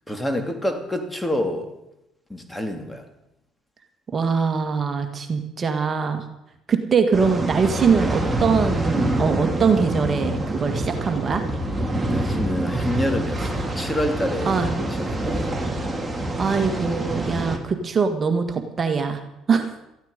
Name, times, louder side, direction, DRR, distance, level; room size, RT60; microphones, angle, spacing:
voice 1, 0.1-1.7 2.3-3.0 12.1-15.6, left 1 dB, 10° left, 6 dB, 2.7 m, -27 dB
voice 2, 4.1-6.2 6.7-11.4 14.5-14.7 16.4-19.2 19.5-19.8, right 5 dB, 35° right, 6 dB, 1.9 m, -22 dB
sound 1, 7.1-17.6, right 1 dB, 15° right, 2.7 m, -26 dB
18.0 x 14.5 x 5.3 m, 0.86 s
supercardioid pair, 70°, 0 cm